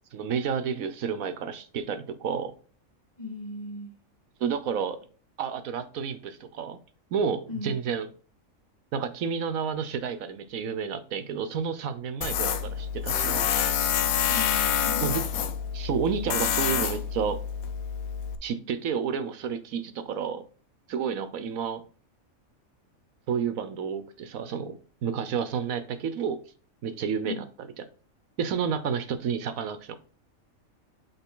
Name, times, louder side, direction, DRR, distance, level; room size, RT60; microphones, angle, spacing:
voice 1, 0.1-2.5 4.4-5.0 5.4-6.8 7.1-8.1 8.9-13.5 15.0-15.2 15.7-17.4 18.4-20.4 20.9-21.8 23.3-26.4 26.8-27.4 28.4-29.9, right 6 dB, 80° right, 11 dB, 1.2 m, -30 dB
voice 2, 3.2-3.9 7.5-7.8 14.3-15.2 27.2-27.5, left 3 dB, 30° left, 2 dB, 1.6 m, -37 dB
Tools, 12.2-18.4, left 8 dB, 85° left, 1.2 m, -27 dB
8.1 x 3.7 x 3.7 m, 0.38 s
omnidirectional pair, 1.4 m